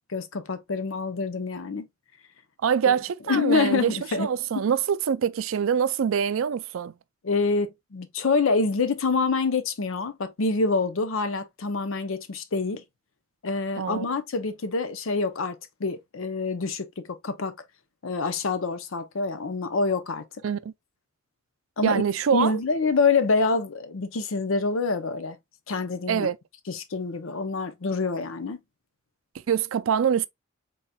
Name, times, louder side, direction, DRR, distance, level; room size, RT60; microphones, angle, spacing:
voice 1, 0.1-1.9 2.9-3.0 3.3-4.3 4.5-4.7 7.2-12.8 13.4-17.5 18.0-20.2 21.8-22.0 22.3-25.4 25.7-26.3 26.7-28.6, left 4 dB, 65° left, 0.6 m, -26 dB
voice 2, 2.6-6.9 13.8-14.1 20.4-20.7 21.8-22.6 26.1-26.4 29.5-30.3, right 7 dB, 70° right, 0.4 m, -24 dB
4.1 x 3.9 x 2.2 m
head